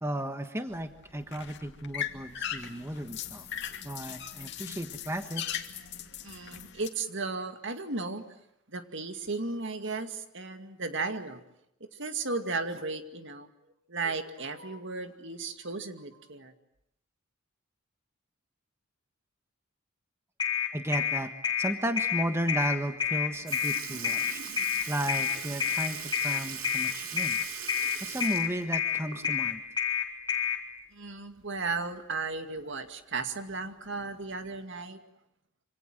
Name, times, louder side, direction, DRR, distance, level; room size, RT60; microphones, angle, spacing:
voice 1, 0.0-3.4 3.8-5.4 20.7-21.3 21.6-24.4 24.9-26.0 26.2-27.4 28.0-29.6, right 1 dB, 15° right, 7 dB, 1.4 m, -34 dB
sound 1, 0.7-6.9, left 9 dB, 55° left, 2.5 m, -39 dB
voice 2, 6.2-8.2 8.7-11.4 11.9-13.5 13.9-16.5 30.9-35.0, right 3 dB, 60° right, 7 dB, 2.3 m, -35 dB
sound 2, 20.4-30.6, left 9 dB, 20° left, 4.2 m, -28 dB
Sink (filling or washing) / Liquid, 23.0-23.1 23.5-29.6 29.9-30.0 31.6-31.7 32.6-32.7 33.5-33.7 34.5-34.6, right 8 dB, 85° right, 2.5 m, -40 dB
27.0 x 26.0 x 7.8 m, 0.78 s
head